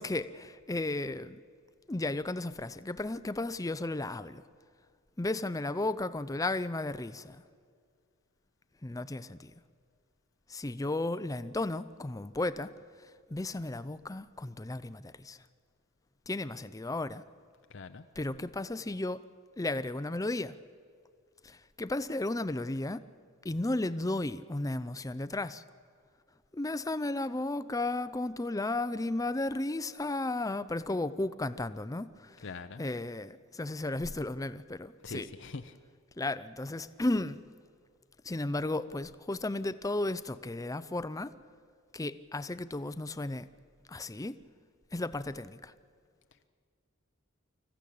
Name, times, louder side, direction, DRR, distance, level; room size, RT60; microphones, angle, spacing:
voice 1, 0.0-1.4 1.9-4.4 5.2-7.4 8.8-9.5 10.5-12.7 13.0-15.4 16.3-17.2 18.2-19.2 19.6-20.6 21.4-23.1 23.4-25.6 26.5-32.5 32.8-35.3 36.2-37.4 38.2-41.4 41.9-43.5 43.9-44.4 44.9-45.7, left 2 dB, 15° left, 0.5 m, -34 dB
voice 2, 17.7-18.0 32.4-32.8 35.0-35.7, left 4 dB, 60° left, 0.7 m, -42 dB
26.0 x 15.0 x 8.6 m
head